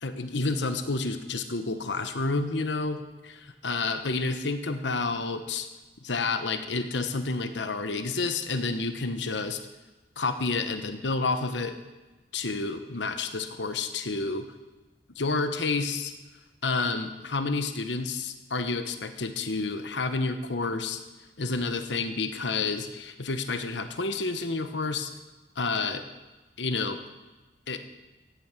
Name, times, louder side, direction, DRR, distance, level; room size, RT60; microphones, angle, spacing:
voice 1, 0.0-5.7 6.0-9.6 10.2-11.8 12.3-14.5 15.2-16.1 16.6-21.0 21.4-25.1 25.6-26.0 26.6-27.0 27.7-27.8, left 3 dB, 85° left, 9 dB, 1.2 m, -29 dB
15.5 x 9.1 x 8.3 m, 1.1 s
head